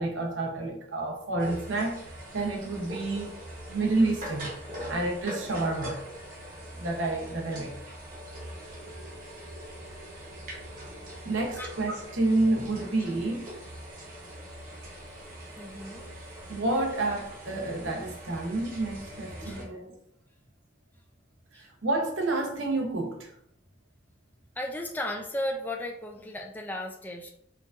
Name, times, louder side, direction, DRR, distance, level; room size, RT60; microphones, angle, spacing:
voice 1, 0.0-2.0 2.3-3.4 3.7-4.5 4.9-6.0 6.8-7.8 11.2-13.5 16.5-19.9 21.5-23.3, right 2 dB, 90° right, 0.8 m, -29 dB
sound 1, 1.4-19.7, right 1 dB, 45° right, 0.9 m, -42 dB
voice 2, 15.6-16.1 19.4-19.7 21.5-21.6 24.6-27.3, left 1 dB, 10° left, 0.3 m, -35 dB
4.4 x 2.5 x 2.4 m
head